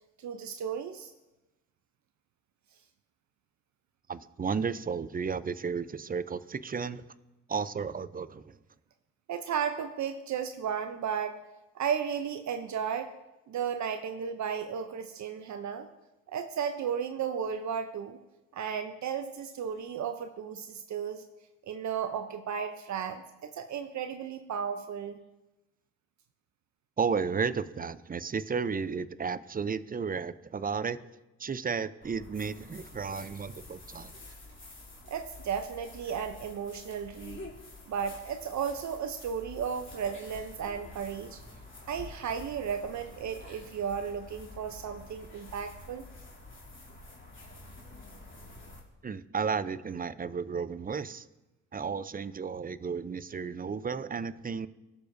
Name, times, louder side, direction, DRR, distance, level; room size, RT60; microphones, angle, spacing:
voice 1, 0.2-1.1 9.3-11.4 11.7-13.1 13.5-15.9 16.3-18.2 18.5-21.2 21.7-25.2 35.1-37.4 37.9-41.4 41.9-46.1, right 7 dB, 65° right, 8 dB, 0.7 m, -34 dB
voice 2, 4.1-7.0 7.5-8.5 27.0-31.0 31.4-34.1 49.0-51.3 51.7-54.7, right 5 dB, 30° right, 15 dB, 0.6 m, -33 dB
sound 1, 32.0-48.8, left 2 dB, 40° left, 3.0 m, -49 dB
17.5 x 7.0 x 2.7 m, 1.0 s
supercardioid pair, 50°, 31 cm